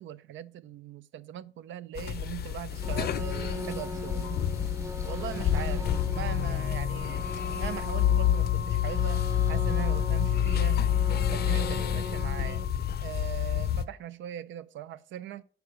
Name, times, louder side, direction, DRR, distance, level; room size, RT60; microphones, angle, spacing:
voice 1, 0.0-4.3 5.0-7.3 7.5-10.9 11.3-12.7 13.0-15.4, right 11 dB, 70° right, 0.5 m, -40 dB
sound 1, 2.0-13.9, left 10 dB, 55° left, 0.5 m, -28 dB
sound 2, 2.7-12.6, equal, 15° right, 0.6 m, -39 dB
6.7 x 4.7 x 6.2 m
cardioid pair, 90°, 20 cm